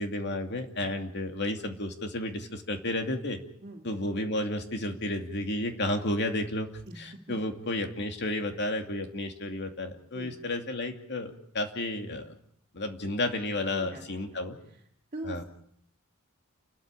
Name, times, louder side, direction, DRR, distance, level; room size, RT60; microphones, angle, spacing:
voice 1, 0.0-3.4 3.8-6.7 7.0-12.3 12.7-14.6 15.2-15.4, left 1 dB, 55° left, 5 dB, 2.6 m, -32 dB
voice 2, 13.7-14.0 14.3-14.8 15.1-15.4, right 1 dB, 35° right, -2 dB, 2.7 m, -42 dB
29.5 x 13.5 x 8.8 m, 0.68 s
head